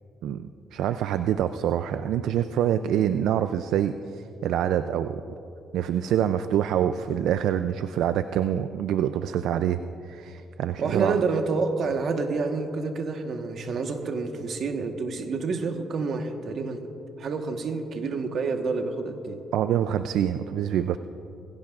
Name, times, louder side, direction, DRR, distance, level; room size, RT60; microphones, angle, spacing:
voice 1, 0.2-5.2 5.7-9.8 10.0-11.2 19.5-21.0, right 10 dB, 85° right, 10 dB, 0.3 m, -26 dB
voice 2, 10.8-16.9 17.2-19.4, right 4 dB, 60° right, 5 dB, 1.2 m, -28 dB
21.5 x 16.0 x 2.5 m, 2.8 s
cardioid pair, 90°, 0 cm